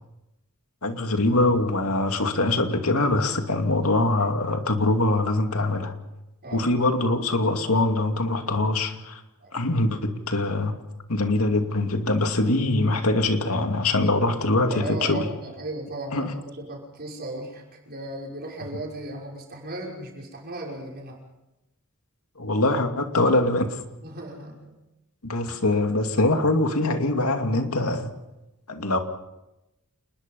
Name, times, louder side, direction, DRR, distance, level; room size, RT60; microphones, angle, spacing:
voice 1, 0.8-5.9 6.5-9.2 9.5-10.8 11.1-15.3 16.1-16.3 22.4-23.8 25.2-28.1 28.7-29.0, left 2 dB, 70° left, 5 dB, 2.6 m, -23 dB
voice 2, 6.4-6.8 9.4-9.5 14.6-21.2 24.0-24.7, right 1 dB, 45° right, -1 dB, 5.9 m, -36 dB
28.5 x 21.0 x 5.5 m, 0.93 s
head